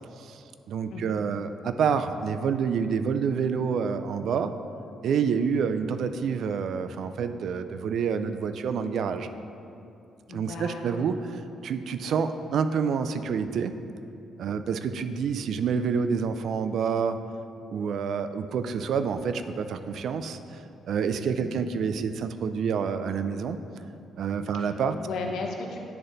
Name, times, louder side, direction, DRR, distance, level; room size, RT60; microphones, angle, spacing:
voice 1, 0.2-4.5 5.0-9.3 10.3-11.2 11.6-13.7 14.4-17.2 17.7-20.4 20.9-23.6 24.2-25.0, right 6 dB, 70° right, 10 dB, 0.3 m, -28 dB
voice 2, 10.3-11.0 21.4-21.5 24.5-24.7 25.0-25.8, left 3 dB, 75° left, 2 dB, 0.8 m, -35 dB
9.7 x 3.9 x 3.9 m, 2.7 s
cardioid pair, 90°, 0 cm